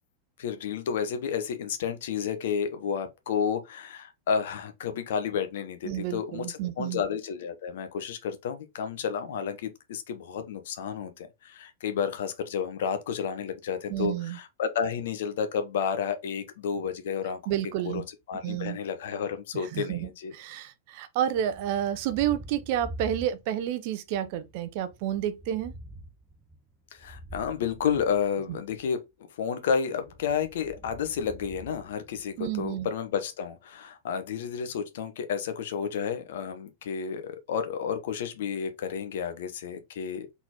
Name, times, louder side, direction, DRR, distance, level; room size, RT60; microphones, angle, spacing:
voice 1, 0.4-17.4 17.8-20.3 26.9-29.0 29.4-40.3, left 7 dB, 55° left, 0.9 m, -31 dB
voice 2, 5.8-7.0 13.9-14.4 17.5-18.0 18.4-18.8 19.5-25.7 28.5-28.6 32.4-32.9, right 11 dB, 50° right, 0.6 m, -30 dB
Thunder, 21.3-23.8 24.1-28.9 30.0-32.6, equal, 10° right, 0.7 m, -46 dB
4.0 x 3.9 x 2.9 m
figure-of-eight pair, 90°, 0 cm